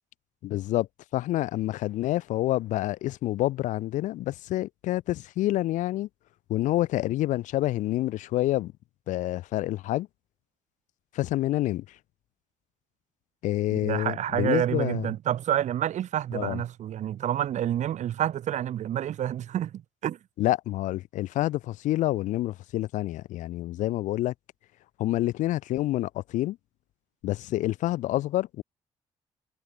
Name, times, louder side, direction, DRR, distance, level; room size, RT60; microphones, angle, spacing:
voice 1, 0.4-0.9 1.1-6.1 6.5-8.7 9.1-10.1 11.1-11.9 13.4-15.1 16.3-16.6 20.4-24.3 25.0-26.6 27.2-28.6, left 15 dB, 80° left, 0.5 m, -28 dB
voice 2, 13.7-20.2, right 11 dB, 70° right, 0.8 m, -28 dB
hypercardioid pair, 45°, 13 cm